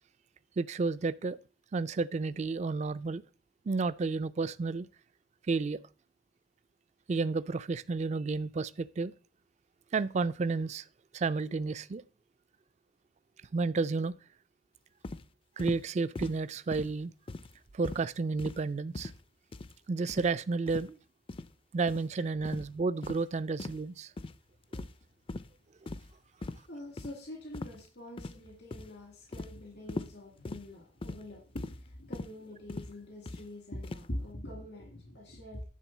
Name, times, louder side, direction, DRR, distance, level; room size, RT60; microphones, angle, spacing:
voice 1, 0.6-1.4 1.7-3.2 3.7-4.9 5.5-5.8 7.1-9.1 9.9-10.8 11.1-12.0 13.5-14.1 15.6-17.1 17.7-19.1 19.9-21.0 21.7-24.1, right 4 dB, 40° right, 0.4 m, -31 dB
sound 1, 15.0-15.2 15.6-15.8 16.1-16.4 16.7-16.9 17.3-17.6 17.8-18.0 18.4-18.6 18.9-19.2 19.5-19.7 20.1-20.3 20.7-20.9 21.3-21.5 21.9-22.0 22.4-22.7 23.0-23.2 23.6-23.8 24.2-24.4 24.7-25.0 25.3-25.5 25.9-26.1 26.4-26.6 27.0-27.1 27.5-27.8 28.2-28.5 28.7-28.9 29.3-29.5 29.9-30.1 30.4-30.6 31.0-31.2 31.6-31.8 32.1-32.3 32.7-32.9 33.2-33.4 33.8-34.1, left 2 dB, 30° left, 0.4 m, -40 dB
voice 2, 26.7-35.6, left 1 dB, 85° left, 2.3 m, -44 dB
10.0 x 3.7 x 7.1 m
head